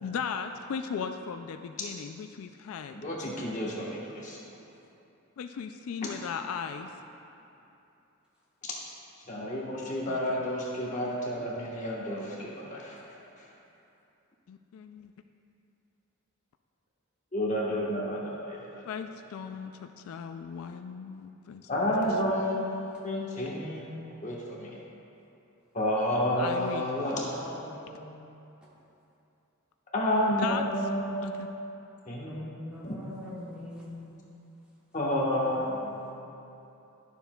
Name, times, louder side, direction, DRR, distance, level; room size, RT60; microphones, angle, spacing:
voice 1, 0.0-3.0 5.4-6.9 10.1-10.4 14.5-15.1 18.8-21.9 22.2-22.4 26.4-26.8 30.4-30.6 31.2-31.5, left 6 dB, 75° left, 7 dB, 0.3 m, -37 dB
voice 2, 2.9-4.4 9.3-13.0 17.3-18.8 21.7-23.9 24.2-24.7 25.7-28.1 29.9-31.3 32.1-32.5 32.8-32.9 34.9-35.8, left 1 dB, 35° left, -5 dB, 1.2 m, -30 dB
voice 3, 32.3-34.1 35.5-36.1, left 1 dB, 5° right, -9 dB, 1.6 m, -44 dB
12.0 x 6.9 x 2.3 m, 2.8 s
head